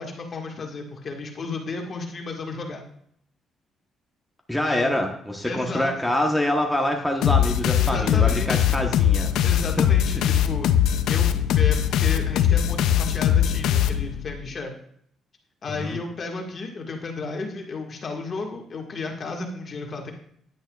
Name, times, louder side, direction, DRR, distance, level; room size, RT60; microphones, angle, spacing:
voice 1, 0.0-2.8 4.6-5.0 5.4-5.9 7.7-8.6 9.4-10.7 11.1-11.3 11.5-14.7 15.6-20.1, left 3 dB, 45° left, 2 dB, 1.7 m, -33 dB
voice 2, 4.5-9.3 9.8-9.9 15.7-16.0, left 1 dB, 5° left, 1 dB, 1.1 m, -25 dB
sound 1, 7.2-14.4, left 10 dB, 85° left, 0.4 m, -21 dB
10.5 x 8.7 x 2.4 m, 0.67 s
cardioid pair, 90°, 0 cm